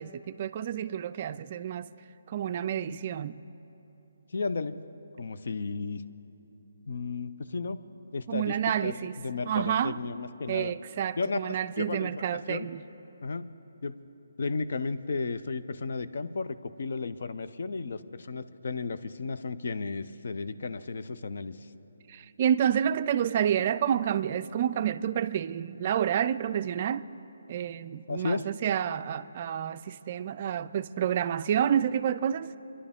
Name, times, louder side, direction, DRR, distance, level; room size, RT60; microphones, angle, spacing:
voice 1, 0.0-1.9 2.3-3.4 8.3-9.2 9.5-10.0 10.5-12.8 22.1-27.1 27.5-32.5, right 9 dB, 40° right, 0.3 m, -29 dB
voice 2, 4.3-4.8 5.2-6.0 6.9-7.8 8.1-8.6 8.8-10.7 11.2-12.7 13.2-13.5 13.8-14.0 14.4-21.7 28.1-28.5, left 4 dB, 65° left, 0.5 m, -34 dB
25.5 x 11.0 x 3.6 m
figure-of-eight pair, 150°, 0 cm